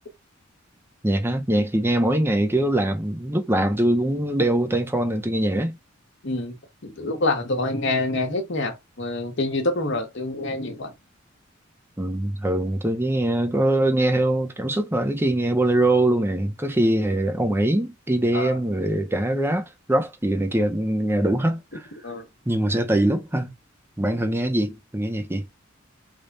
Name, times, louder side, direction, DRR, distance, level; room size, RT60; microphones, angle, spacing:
voice 1, 1.0-5.8 12.0-21.9 22.5-23.5 24.0-25.5, right 1 dB, 10° right, 0.7 m, -22 dB
voice 2, 6.2-6.6 6.8-10.9 18.3-18.6 22.0-22.2, left 2 dB, 65° left, 1.1 m, -26 dB
3.4 x 2.3 x 3.9 m
head